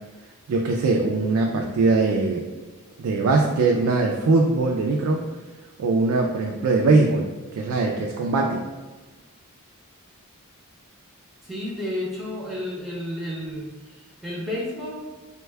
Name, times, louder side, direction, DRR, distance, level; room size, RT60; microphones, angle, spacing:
voice 1, 0.5-2.4 3.0-5.3 5.8-8.6, right 3 dB, 70° right, 1 dB, 0.3 m, -21 dB
voice 2, 11.4-15.0, left 1 dB, ahead, -6 dB, 0.5 m, -32 dB
3.4 x 2.2 x 3.2 m, 1.3 s
head